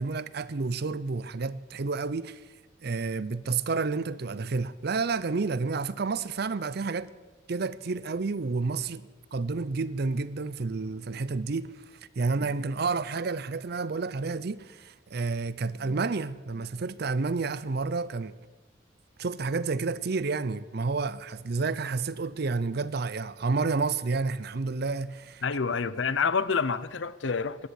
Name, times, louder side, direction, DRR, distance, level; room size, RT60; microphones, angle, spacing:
voice 1, 0.0-2.4 2.8-7.1 7.5-11.7 12.2-18.3 19.2-25.4, right 4 dB, 55° right, 0.5 m, -30 dB
voice 2, 25.4-27.7, left 5 dB, 70° left, 0.6 m, -28 dB
14.0 x 11.0 x 8.2 m
head